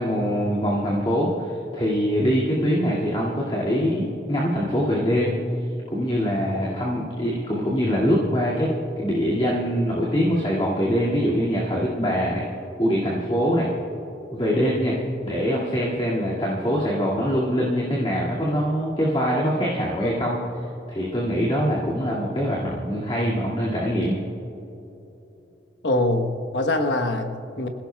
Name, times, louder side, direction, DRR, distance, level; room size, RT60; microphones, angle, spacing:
voice 1, 0.0-5.3 5.9-12.4 12.8-13.7 14.3-15.0 15.2-20.4 20.9-24.2, equal, 25° left, -6 dB, 2.2 m, -23 dB
voice 2, 25.8-27.7, left 1 dB, 75° left, 5 dB, 1.2 m, -24 dB
26.0 x 16.5 x 2.3 m, 3.0 s
head